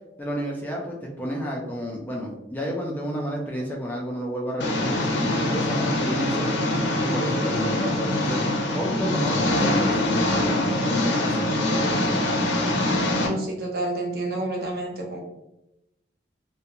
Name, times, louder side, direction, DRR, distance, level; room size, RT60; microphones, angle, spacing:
voice 1, 0.2-6.5 7.0-8.4 8.7-11.4, equal, 10° left, -2 dB, 0.3 m, -31 dB
Engine, 4.6-13.3, left 1 dB, 80° left, 0.5 m, -24 dB
voice 2, 13.1-15.2, right 1 dB, 55° right, 0 dB, 0.6 m, -29 dB
2.4 x 2.1 x 2.8 m, 0.89 s
head